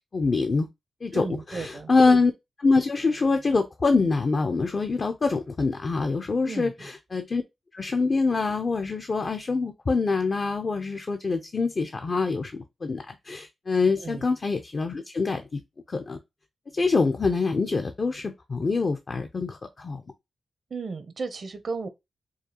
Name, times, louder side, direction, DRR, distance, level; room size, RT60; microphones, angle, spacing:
voice 1, 0.1-0.7 1.0-2.3 2.6-7.4 7.7-15.6 15.9-16.2 16.7-20.0, left 4 dB, 50° left, 0.5 m, -25 dB
voice 2, 1.1-1.9 6.5-6.7 14.0-14.2 20.7-21.9, right 4 dB, 60° right, 0.6 m, -34 dB
4.7 x 2.3 x 2.8 m
supercardioid pair, 45°, 0 cm